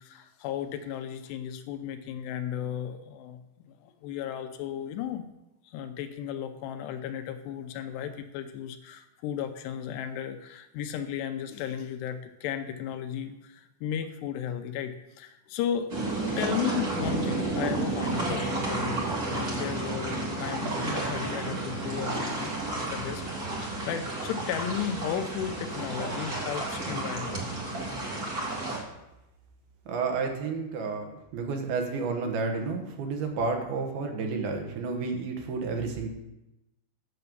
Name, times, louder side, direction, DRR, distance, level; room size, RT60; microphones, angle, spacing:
voice 1, 0.0-3.4 3.7-5.3 5.6-15.9 16.4-27.4, left 9 dB, 80° left, 8 dB, 2.8 m, -35 dB
sound 1, 15.9-28.8, right 2 dB, 40° right, 1.3 m, -31 dB
voice 2, 29.9-36.1, right 4 dB, 70° right, 3 dB, 3.0 m, -31 dB
9.6 x 6.8 x 6.9 m, 0.92 s
omnidirectional pair, 5.0 m